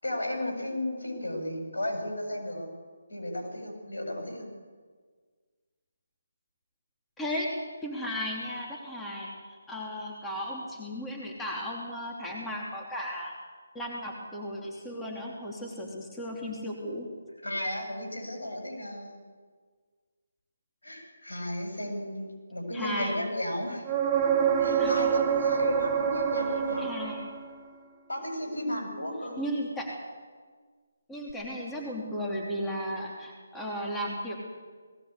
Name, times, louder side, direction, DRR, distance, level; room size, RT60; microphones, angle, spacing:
voice 1, 0.0-2.8 3.1-4.5 17.4-19.2 20.8-23.9 24.6-27.0 28.1-29.5, left 1 dB, 80° left, 2 dB, 7.2 m, -34 dB
voice 2, 7.2-7.5 7.8-13.3 13.7-17.1 22.7-23.2 24.8-25.1 26.8-27.2 29.4-29.9 31.1-34.3, equal, 5° left, -3 dB, 3.1 m, -35 dB
sound 1, 23.8-27.6 31.3-31.4, right 8 dB, 20° right, 1.8 m, -26 dB
19.5 x 17.0 x 8.3 m, 1.5 s
figure-of-eight pair, 155°, 0 cm